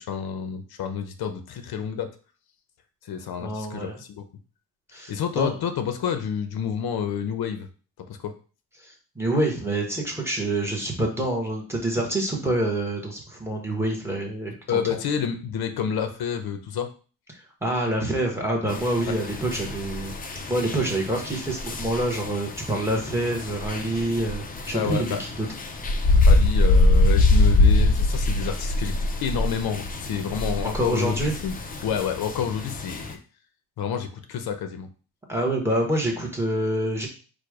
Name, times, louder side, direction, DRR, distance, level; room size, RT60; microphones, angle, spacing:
voice 1, 0.0-2.1 3.0-4.2 5.1-7.7 8.1-8.3 14.7-16.9 19.1-19.2 24.7-25.2 26.1-29.0 29.2-31.5 31.8-33.2 33.8-34.9, left 7 dB, 90° left, 8 dB, 0.8 m, -29 dB
voice 2, 3.4-4.0 4.9-5.5 8.8-14.8 17.6-20.1 20.5-25.5 30.7-31.3 35.3-37.1, right 1 dB, 5° right, 0 dB, 1.0 m, -26 dB
sound 1, 18.7-33.1, left 2 dB, 25° left, 0.4 m, -24 dB
4.9 x 2.2 x 4.7 m, 0.37 s
wide cardioid pair, 175°, 36 cm